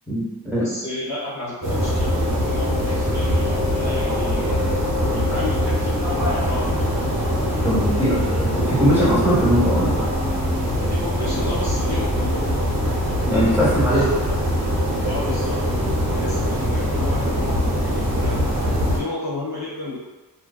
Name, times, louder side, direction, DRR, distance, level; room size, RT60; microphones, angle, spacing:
voice 1, 0.6-4.5 5.1-6.9 10.9-12.8 13.5-14.0 15.0-18.4 18.9-20.0, left 2 dB, 45° left, -9 dB, 0.6 m, -32 dB
sound 1, 1.6-19.0, equal, 45° right, 0.7 m, -22 dB
voice 2, 7.6-10.1 13.3-14.1, equal, 5° right, -11 dB, 1.0 m, -20 dB
2.5 x 2.1 x 2.3 m, 1.2 s
wide cardioid pair, 160°, 41 cm